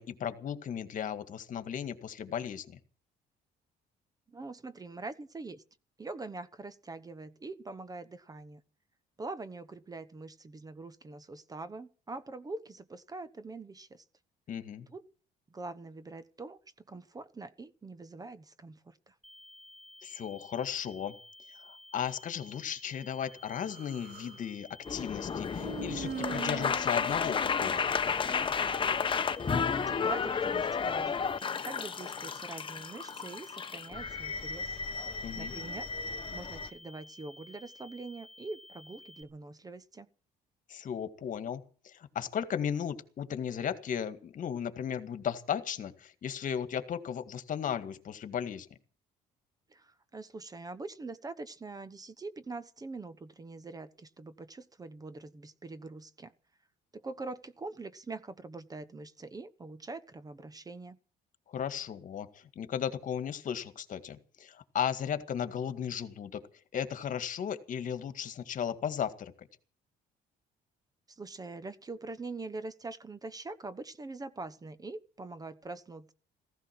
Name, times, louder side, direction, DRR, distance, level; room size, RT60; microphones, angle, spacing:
voice 1, 0.0-2.8 14.5-14.9 20.0-21.2 21.6-28.0 35.2-35.5 40.7-48.7 61.5-66.4 66.7-69.5, left 8 dB, 50° left, 2.0 m, -36 dB
voice 2, 4.3-5.6 6.0-8.6 9.2-14.0 14.9-15.1 15.5-16.6 16.9-19.1 29.5-31.3 31.6-34.8 35.3-35.9 36.3-40.1 49.7-56.3 56.9-61.0 71.1-76.1, right 3 dB, 20° right, 1.0 m, -44 dB
sound 1, 19.2-39.2, left 1 dB, ahead, 2.0 m, -53 dB
Human voice, 23.5-24.4 25.6-28.3, right 7 dB, 70° right, 3.2 m, -42 dB
sound 2, 24.8-36.7, left 6 dB, 30° left, 1.1 m, -32 dB
15.5 x 15.5 x 6.1 m
cardioid pair, 110°, 17 cm